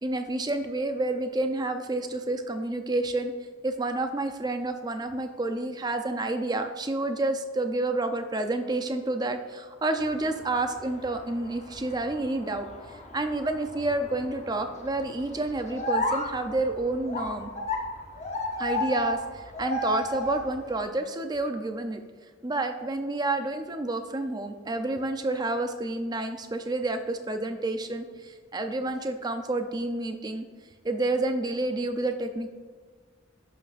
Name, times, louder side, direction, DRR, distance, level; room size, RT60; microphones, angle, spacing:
voice 1, 0.0-3.3 3.6-12.7 13.1-17.5 18.6-22.0 22.4-30.4 30.8-32.5, right 2 dB, 20° right, 7 dB, 0.5 m, -29 dB
sound 1, 10.0-20.8, left 1 dB, 35° left, 0.8 m, -34 dB
11.0 x 5.9 x 2.5 m, 1.5 s
head